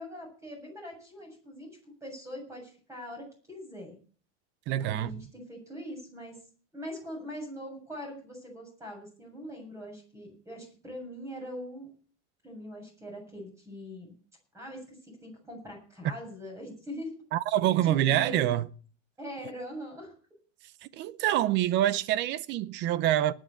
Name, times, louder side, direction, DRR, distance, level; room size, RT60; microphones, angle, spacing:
voice 1, 0.0-4.0 4.8-6.4 6.7-11.9 12.4-14.1 14.5-15.0 15.2-17.1 17.8-18.5 19.2-20.1, equal, 10° right, 7.4 m, -42 dB
voice 2, 4.7-5.2 17.3-18.7 20.8-23.3, right 13 dB, 35° right, 0.6 m, -26 dB
19.5 x 6.4 x 7.2 m
supercardioid pair, 160°, 33 cm